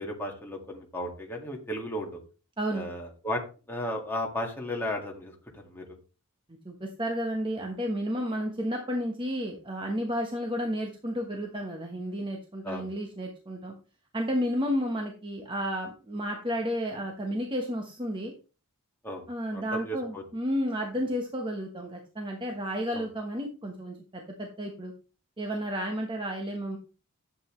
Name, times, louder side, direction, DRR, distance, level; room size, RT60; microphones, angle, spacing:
voice 1, 0.0-2.2 2.7-3.4 3.7-5.3 5.7-5.8 12.6-12.9 19.0-19.2 19.5-20.2 22.9-23.1, left 1 dB, 10° left, 0 dB, 1.9 m, -34 dB
voice 2, 6.6-13.7 14.1-18.3 19.3-24.9 25.4-26.8, equal, 20° right, 2 dB, 1.1 m, -32 dB
11.0 x 7.9 x 3.2 m, 0.35 s
head